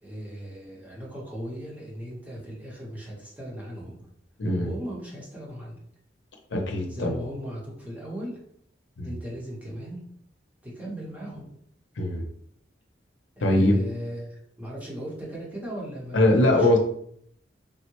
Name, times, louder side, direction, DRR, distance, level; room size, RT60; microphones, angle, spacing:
voice 1, 0.0-3.9 4.5-5.8 6.9-8.4 9.0-10.0 10.6-11.5 13.4-16.7, equal, 10° right, -4 dB, 0.8 m, -37 dB
voice 2, 6.5-7.1 9.0-9.1 12.0-12.2 13.4-13.8 16.1-16.8, left 1 dB, 85° left, 2 dB, 0.6 m, -21 dB
3.5 x 2.1 x 3.0 m, 0.67 s
head